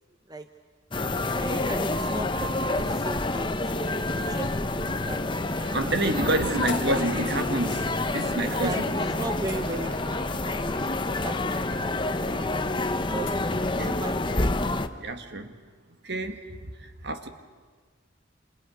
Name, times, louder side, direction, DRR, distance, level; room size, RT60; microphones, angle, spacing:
sound 1, 0.9-14.9, left 2 dB, 25° left, 0.9 m, -28 dB
voice 1, 1.1-6.3 6.9-7.0 8.4-11.5 11.8-12.5 12.7-13.3 13.7-14.2, right 2 dB, 20° right, 7 dB, 0.8 m, -38 dB
sound 2, 5.5-10.6, right 1 dB, 90° right, 4.4 m, -43 dB
voice 2, 5.7-8.9 13.8-14.0 15.0-15.5 16.0-16.7 17.0-17.3, right 1 dB, 55° right, 7 dB, 1.9 m, -28 dB
sound 3, 6.7-7.2 8.5-8.7 9.5-10.1 12.0-12.1 13.2-13.6, left 8 dB, 65° left, 1.6 m, -43 dB
29.0 x 28.0 x 6.4 m, 1.5 s
head